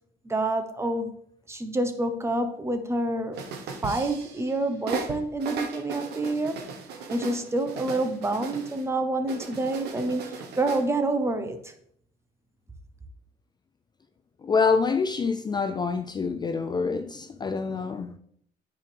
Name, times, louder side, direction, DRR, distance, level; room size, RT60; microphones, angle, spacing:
voice 1, 0.2-1.1 1.5-3.4 3.8-6.6 7.1-11.6, right 2 dB, 15° right, 0.9 m, -27 dB
sound 1, 3.3-4.5 4.9-8.8 9.3-10.9, right 5 dB, 75° right, 1.1 m, -37 dB
voice 2, 14.4-18.1, left 5 dB, 25° left, 0.4 m, -26 dB
9.4 x 5.0 x 3.4 m
cardioid pair, 110°, 17 cm